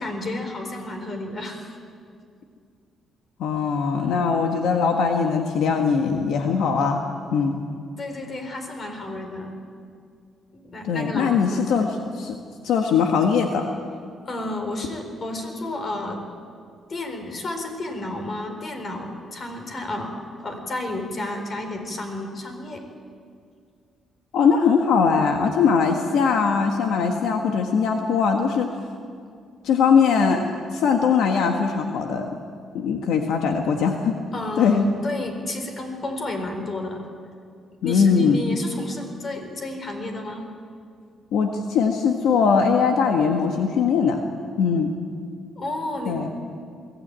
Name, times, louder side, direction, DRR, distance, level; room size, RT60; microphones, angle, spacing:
voice 1, 0.0-1.8 8.0-9.5 10.5-11.9 14.3-16.2 16.9-22.8 34.3-37.0 37.8-40.5 45.6-46.2, left 1 dB, 45° left, 5 dB, 4.3 m, -31 dB
voice 2, 3.4-7.0 7.3-7.6 10.8-12.3 12.6-13.6 24.3-28.7 29.6-30.4 30.7-32.4 32.7-34.1 34.6-34.8 37.8-38.4 41.3-44.2 44.6-44.9 46.1-46.3, left 6 dB, 80° left, 3 dB, 1.5 m, -21 dB
22.5 x 16.0 x 8.9 m, 2.2 s
cardioid pair, 90°, 0 cm